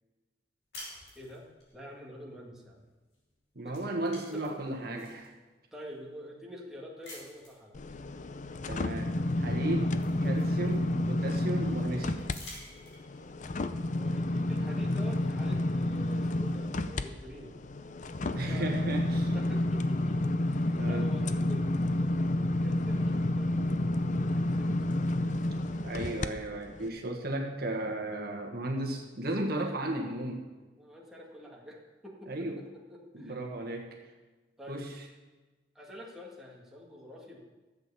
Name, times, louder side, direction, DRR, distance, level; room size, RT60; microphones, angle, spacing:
sound 1, 0.7-1.7 3.1-3.3 3.6-5.3 5.9-6.0 7.0-7.6 9.1-9.2 9.6-11.1 12.2-13.3, left 1 dB, 75° left, 5.3 m, -49 dB
voice 1, 1.1-2.9 3.6-3.8 4.3-5.1 5.7-7.8 13.7-17.6 18.2-26.4 27.2-27.4 29.6-29.8 30.8-33.4 34.6-34.8 35.7-37.4, equal, ahead, -3 dB, 2.0 m, -48 dB
voice 2, 3.5-5.2 8.7-12.1 18.3-19.3 20.8-21.1 25.8-30.4 32.3-32.6 33.1-34.0 34.7-35.1, right 1 dB, 55° right, 2 dB, 1.5 m, -35 dB
sound 2, 7.7-12.4 12.8-26.3 26.8-26.9, left 1 dB, 45° left, 0.6 m, -30 dB
12.5 x 7.9 x 7.0 m, 1.2 s
head